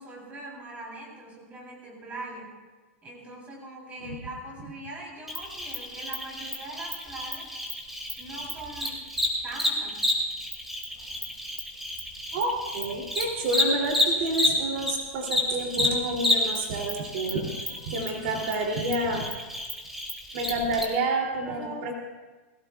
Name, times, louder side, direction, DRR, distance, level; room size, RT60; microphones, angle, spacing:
voice 1, 0.0-2.6 3.0-7.5 8.2-9.0 9.4-10.1 21.4-21.9, right 2 dB, 20° right, -2 dB, 3.5 m, -41 dB
Cricket, 5.3-14.9 15.2-20.8, left 1 dB, 5° right, 2.3 m, -29 dB
voice 2, 12.3-17.5 17.9-19.3 20.3-21.9, right 2 dB, 65° right, 0 dB, 2.8 m, -29 dB
21.0 x 16.5 x 2.4 m, 1.3 s
supercardioid pair, 155°, 7 cm